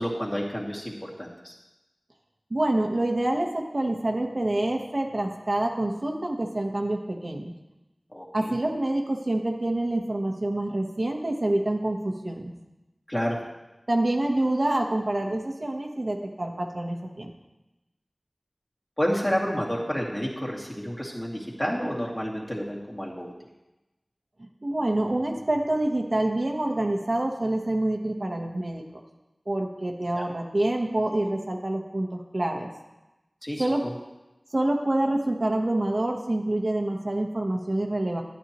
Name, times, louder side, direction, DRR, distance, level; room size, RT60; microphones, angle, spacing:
voice 1, 0.0-1.6 8.1-8.6 13.1-13.4 19.0-23.3 30.1-30.3 33.4-34.0, equal, 25° left, -4 dB, 2.3 m, -30 dB
voice 2, 2.5-7.5 8.3-12.5 13.9-17.3 24.4-29.0 29.5-32.7 33.6-33.8 34.5-38.2, right 1 dB, 60° right, 2 dB, 1.0 m, -27 dB
11.5 x 9.8 x 3.0 m, 1.0 s
wide cardioid pair, 45°, 0 cm